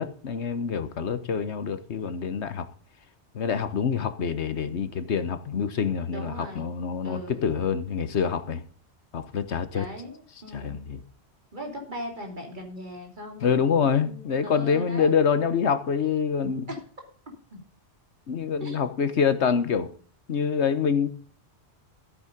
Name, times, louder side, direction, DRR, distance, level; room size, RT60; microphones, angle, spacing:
voice 1, 0.0-2.7 3.3-8.6 9.1-9.9 10.5-11.0 13.4-16.7 18.3-19.9 20.3-21.1, left 6 dB, 80° left, 1.3 m, -26 dB
voice 2, 6.1-7.5 9.7-10.8 11.5-15.1 16.7-16.8 17.5-17.6 18.6-18.8, equal, 45° right, 3.3 m, -39 dB
14.0 x 8.4 x 5.2 m
omnidirectional pair, 1.1 m